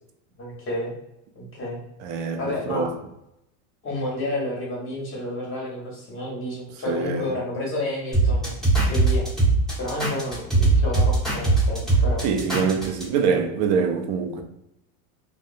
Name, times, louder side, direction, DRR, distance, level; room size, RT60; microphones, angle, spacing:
voice 1, 0.4-0.9 1.3-1.8 2.4-2.9 3.8-8.5 8.8-9.3 9.8-12.3, left 1 dB, 30° left, 1.3 m, -30 dB
voice 2, 2.0-2.9 6.9-7.3 12.2-14.4, right 6 dB, 45° right, 0.4 m, -24 dB
sound 1, 8.1-13.0, right 3 dB, ahead, 1.4 m, -20 dB
2.6 x 2.1 x 2.5 m
supercardioid pair, 120°, 43 cm